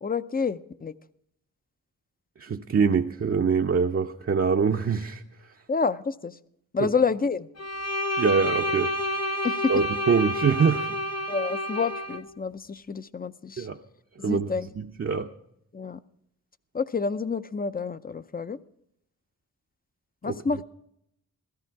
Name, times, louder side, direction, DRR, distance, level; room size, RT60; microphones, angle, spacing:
voice 1, 0.0-0.9 5.7-6.4 6.7-7.5 9.4-9.7 11.3-13.7 14.2-14.7 15.7-16.0 16.7-18.6 20.2-20.6, left 5 dB, 30° left, 0.6 m, -28 dB
voice 2, 2.4-5.2 6.8-6.9 8.2-8.9 9.7-11.0 13.6-13.8 14.2-14.5 14.8-15.3 20.2-20.4, right 5 dB, 45° right, 0.7 m, -24 dB
Bowed string instrument, 7.6-12.2, equal, 55° left, 1.1 m, -29 dB
16.5 x 13.5 x 4.6 m
wide cardioid pair, 110°, 32 cm